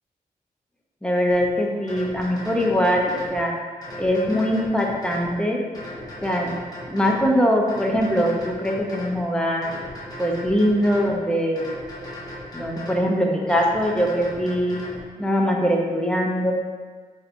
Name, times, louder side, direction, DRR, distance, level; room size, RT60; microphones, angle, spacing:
voice 1, 1.0-3.5 4.0-5.6 6.2-6.6 6.9-9.7 10.2-11.7 12.5-14.8 15.2-16.5, equal, 5° left, -1 dB, 0.5 m, -22 dB
sound 1, 1.3-1.5 1.9-3.4 3.8-5.3 5.7-7.3 7.7-9.2 9.6-11.1 11.6-13.1 13.5-15.0, left 1 dB, 25° left, 1.0 m, -37 dB
4.5 x 2.8 x 2.5 m, 1.5 s
cardioid pair, 80°, 15 cm